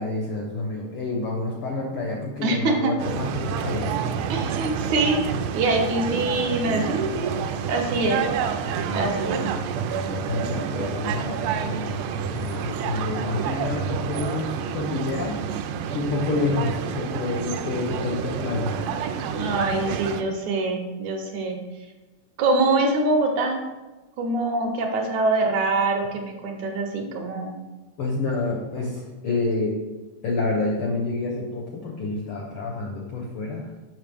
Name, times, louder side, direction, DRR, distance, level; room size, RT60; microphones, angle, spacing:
voice 1, 0.0-3.9 8.9-9.2 9.5-9.6 9.9-15.6 15.9-18.8 28.0-29.8 30.2-33.7, left 3 dB, 85° left, 0 dB, 1.2 m, -28 dB
voice 2, 2.4-2.9 4.3-5.2 5.5-7.4 7.7-8.3 8.9-9.5 19.3-21.6 22.4-23.6 24.2-27.5, right 2 dB, 70° right, 2 dB, 2.1 m, -24 dB
sound 1, 3.0-20.2, right 7 dB, 85° right, 2.1 m, -29 dB
7.3 x 5.9 x 3.4 m, 1.1 s
omnidirectional pair, 3.7 m